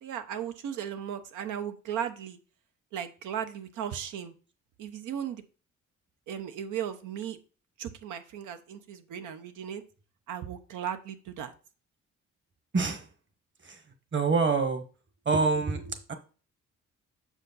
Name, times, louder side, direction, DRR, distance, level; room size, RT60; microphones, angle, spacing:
voice 1, 0.0-2.4 2.9-4.3 4.8-5.4 6.3-7.4 7.8-9.8 10.3-11.5, right 9 dB, 85° right, 8 dB, 0.9 m, -36 dB
voice 2, 12.7-13.1 13.6-13.8 14.1-14.8 15.2-16.1, right 4 dB, 40° right, 8 dB, 1.3 m, -26 dB
6.7 x 4.9 x 4.0 m, 0.37 s
cardioid pair, 90°, 30 cm